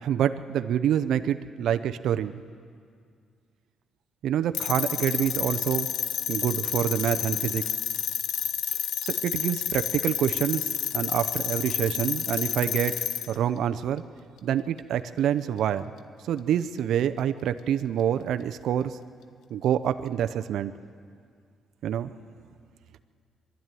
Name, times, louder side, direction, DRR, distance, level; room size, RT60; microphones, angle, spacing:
voice 1, 0.0-2.4 4.2-5.9 6.3-7.7 9.0-10.7 10.9-14.0 14.4-15.9 16.3-19.0 19.5-20.7 21.8-22.1, right 10 dB, 75° right, 10 dB, 0.6 m, -27 dB
sound 1, 4.5-13.3, left 10 dB, 80° left, 0.8 m, -30 dB
22.5 x 12.5 x 9.1 m, 2.2 s
cardioid pair, 90°, 0 cm